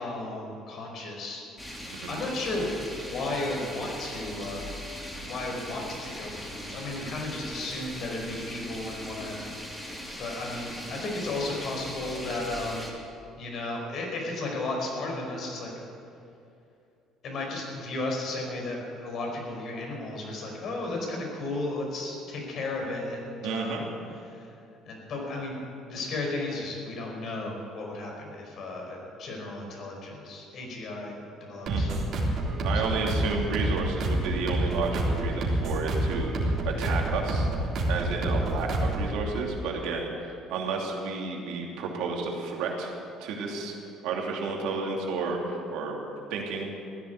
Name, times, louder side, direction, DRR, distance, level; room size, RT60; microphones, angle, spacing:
voice 1, 0.0-1.4 2.1-2.7 3.0-4.7 5.3-9.4 10.2-12.8 13.4-15.7 17.2-23.8 24.3-24.5 24.9-25.6 25.9-31.1 31.4-31.9 32.7-32.9, left 2 dB, 60° left, 0 dB, 5.0 m, -34 dB
sound 1, 1.6-12.9, equal, 10° left, 3.4 m, -40 dB
voice 2, 23.4-23.8 31.6-32.0 32.6-37.5 37.9-42.9 43.2-43.7 44.0-45.9 46.3-46.7, right 4 dB, 80° right, 0 dB, 2.9 m, -31 dB
sound 2, 31.7-39.2, right 1 dB, 55° right, 3.6 m, -28 dB
15.0 x 10.5 x 8.3 m, 2.6 s
supercardioid pair, 85°, 0 cm